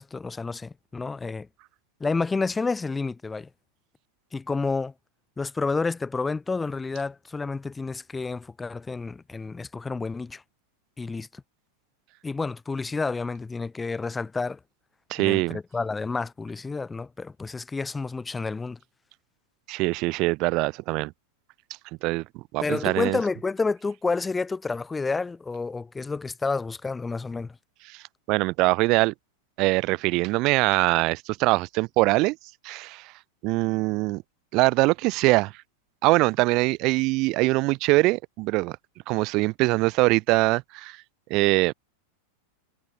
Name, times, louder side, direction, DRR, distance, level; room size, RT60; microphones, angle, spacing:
voice 1, 0.0-1.5 2.0-3.5 4.3-4.9 5.4-10.4 11.0-11.4 12.2-14.6 15.2-18.8 22.6-27.6, left 4 dB, 15° left, 1.1 m, -30 dB
voice 2, 15.1-15.6 19.7-21.1 22.0-22.2 22.5-23.2 27.9-28.0 28.3-29.1 29.6-32.4 32.6-33.1 33.4-34.2 34.5-35.5 36.0-38.8 39.1-41.0 41.3-41.7, right 23 dB, 45° right, 0.6 m, -23 dB
figure-of-eight pair, 90°, 0 cm